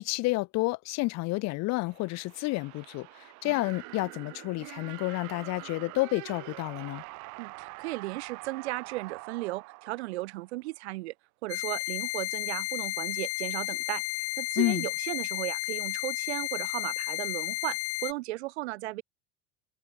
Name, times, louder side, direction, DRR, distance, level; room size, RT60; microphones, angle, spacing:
voice 1, 0.0-7.0 14.6-14.8, left 22 dB, 55° left, 1.3 m, -30 dB
sound 1, 1.9-10.7, right 26 dB, 60° right, 7.3 m, -45 dB
voice 2, 7.4-11.1 11.4-19.0, right 20 dB, 80° right, 7.8 m, -36 dB
sound 2, 11.5-18.1, left 24 dB, 75° left, 2.6 m, -33 dB
supercardioid pair, 115°, 32 cm